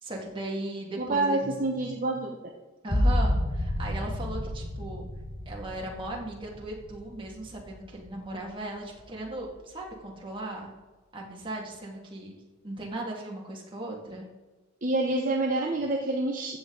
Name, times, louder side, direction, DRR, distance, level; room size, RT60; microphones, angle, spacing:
voice 1, 0.0-1.5 2.8-5.0 5.5-10.7 11.1-12.4 12.6-14.3, right 2 dB, 25° right, -2 dB, 2.1 m, -37 dB
voice 2, 1.0-2.3 14.8-16.6, right 2 dB, 45° right, 0 dB, 0.9 m, -27 dB
sound 1, 2.9-8.3 8.8-9.4, left 1 dB, 30° left, 1.3 m, -30 dB
15.0 x 7.7 x 3.9 m, 1.2 s
head